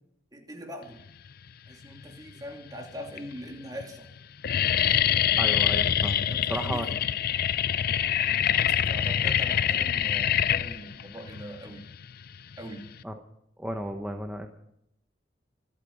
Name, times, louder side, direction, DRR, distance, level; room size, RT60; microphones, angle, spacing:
voice 1, 0.3-1.0 1.7-4.1 6.2-7.0 8.9-11.9 12.6-12.9, equal, 20° right, 1 dB, 2.8 m, -42 dB
sound 1, 1.8-2.4 3.1-3.2 3.5-3.8 4.1-13.0, left 10 dB, 55° left, 0.5 m, -25 dB
voice 2, 5.4-6.2 6.5-6.9 13.0-13.1 13.6-14.5, equal, 5° right, 4 dB, 1.0 m, -33 dB
25.0 x 8.7 x 5.4 m, 0.78 s
head